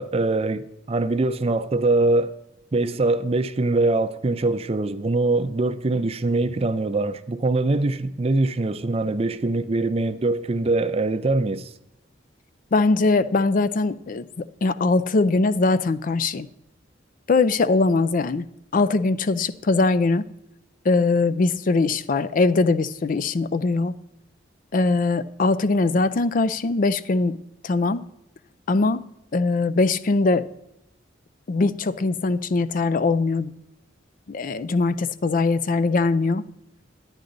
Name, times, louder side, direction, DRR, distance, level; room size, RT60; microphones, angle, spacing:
voice 1, 0.0-2.4 2.7-11.7, right 2 dB, 30° right, 0.5 m, -23 dB
voice 2, 12.7-16.5 17.3-18.5 18.7-20.3 20.8-24.0 24.7-27.4 27.6-28.0 28.7-29.0 29.3-30.4 31.5-33.5 34.3-36.4, left 3 dB, 45° left, 0.4 m, -21 dB
10.5 x 10.0 x 3.9 m
head